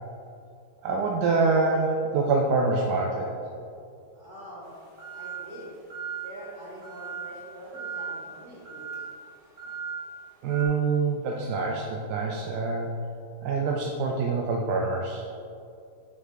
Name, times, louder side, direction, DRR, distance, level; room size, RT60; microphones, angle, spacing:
voice 1, 0.8-3.3 10.4-12.9 13.4-15.3, right 4 dB, 80° right, 0 dB, 1.2 m, -25 dB
voice 2, 4.1-4.7 5.1-5.7 6.2-9.0, right 1 dB, 30° left, -11 dB, 1.3 m, -44 dB
sound 1, 4.6-10.7, right 6 dB, 65° right, 1.7 m, -39 dB
5.8 x 5.5 x 3.8 m, 2.5 s
omnidirectional pair, 1.8 m